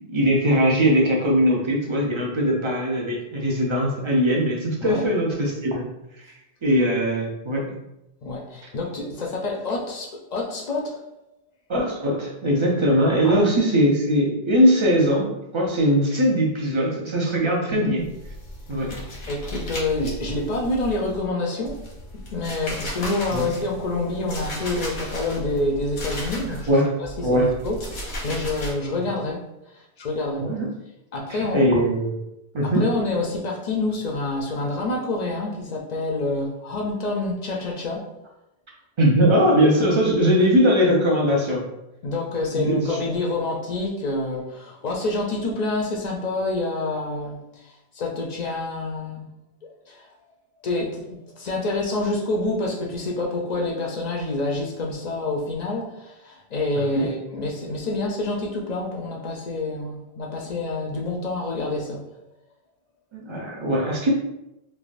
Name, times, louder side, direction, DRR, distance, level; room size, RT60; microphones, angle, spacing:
voice 1, 0.1-5.9 6.2-6.3 6.6-7.7 11.7-18.0 18.7-19.0 23.3-23.5 26.5-26.9 27.2-27.5 30.4-30.7 31.3-32.2 32.5-32.9 39.0-41.6 42.5-43.0 56.9-57.1 63.1-64.1, equal, 40° right, -2 dB, 0.4 m, -20 dB
voice 2, 8.2-11.0 13.2-13.5 17.7-17.9 18.8-18.9 19.3-21.8 22.3-29.5 29.7-30.5 31.1-31.6 32.6-38.0 42.0-49.3 49.9-50.1 50.6-62.0, left 2 dB, 55° left, -1 dB, 0.5 m, -27 dB
sound 1, 18.0-21.3 21.6-26.7 27.0-28.7, left 1 dB, 90° left, 1.1 m, -35 dB
3.3 x 2.1 x 2.4 m, 0.89 s
omnidirectional pair, 1.0 m